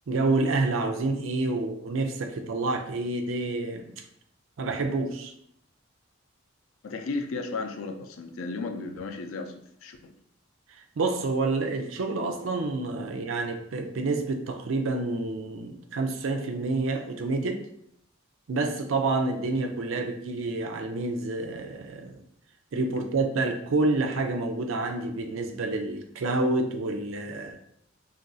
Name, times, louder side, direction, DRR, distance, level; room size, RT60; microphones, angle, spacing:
voice 1, 0.1-3.9 4.6-5.3 11.0-17.6 18.5-22.2 22.7-27.6, right 3 dB, 80° right, 5 dB, 0.4 m, -28 dB
voice 2, 6.8-9.5 9.8-10.1, left 3 dB, 85° left, 5 dB, 0.4 m, -34 dB
2.5 x 2.3 x 3.8 m, 0.71 s
head